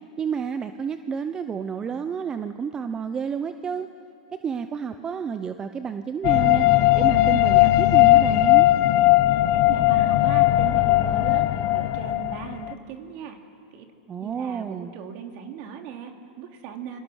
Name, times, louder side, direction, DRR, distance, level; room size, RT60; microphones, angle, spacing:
voice 1, 0.2-3.9 4.3-8.7 14.1-14.9, right 6 dB, 20° right, 9 dB, 0.8 m, -30 dB
sound 1, 6.2-12.7, left 16 dB, 45° left, 0.9 m, -18 dB
voice 2, 9.5-11.5 11.7-13.4 13.7-13.9 14.2-17.0, right 8 dB, 45° right, 4 dB, 3.0 m, -38 dB
29.0 x 25.0 x 6.5 m, 2.5 s
supercardioid pair, 140°, 4 cm